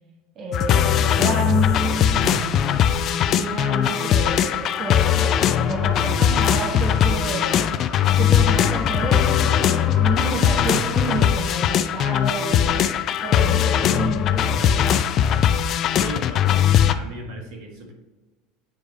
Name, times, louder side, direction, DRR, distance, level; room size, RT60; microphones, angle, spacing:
voice 1, 0.4-5.0 5.5-7.8 8.2-12.9 13.2-15.0, right 4 dB, 45° right, -1 dB, 1.1 m, -30 dB
sound 1, 0.5-16.9, left 9 dB, 50° left, 0.4 m, -20 dB
sound 2, 2.5-11.2, left 1 dB, 10° left, 1.3 m, -36 dB
voice 2, 16.0-17.9, right 1 dB, 65° right, 1 dB, 1.8 m, -36 dB
8.8 x 3.3 x 4.0 m, 1.2 s
hypercardioid pair, 85°, 0 cm